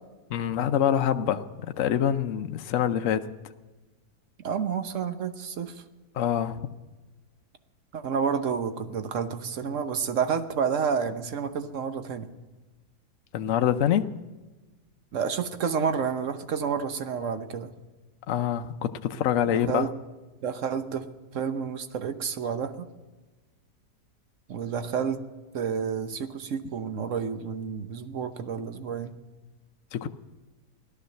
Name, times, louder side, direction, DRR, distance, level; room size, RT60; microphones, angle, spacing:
voice 1, 0.3-3.3 6.1-6.6 13.3-14.1 18.3-19.9 29.9-30.1, left 10 dB, 60° left, 8 dB, 0.9 m, -25 dB
voice 2, 4.4-5.8 7.9-12.3 15.1-17.7 19.5-19.9 20.4-21.0 21.3-22.9 24.5-25.2 25.5-29.1, right 6 dB, 55° right, 9 dB, 1.2 m, -30 dB
17.0 x 12.5 x 6.6 m, 1.2 s
omnidirectional pair, 1.8 m